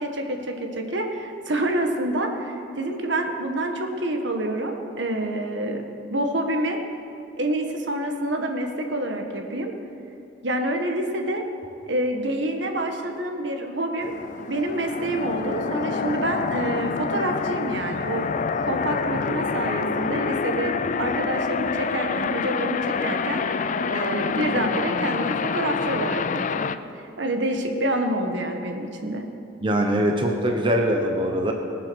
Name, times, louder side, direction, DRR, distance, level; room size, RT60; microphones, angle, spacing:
voice 1, 0.0-5.8 6.1-6.8 7.4-9.7 10.4-11.4 11.8-14.1 14.5-18.3 18.6-23.4 23.9-26.7 26.9-29.3, right 1 dB, 70° right, 4 dB, 1.5 m, -27 dB
sound 1, 14.0-26.8, left 5 dB, 40° left, 0.4 m, -27 dB
voice 2, 29.6-31.5, equal, 25° right, 2 dB, 1.0 m, -22 dB
21.0 x 7.6 x 6.3 m, 2.7 s
head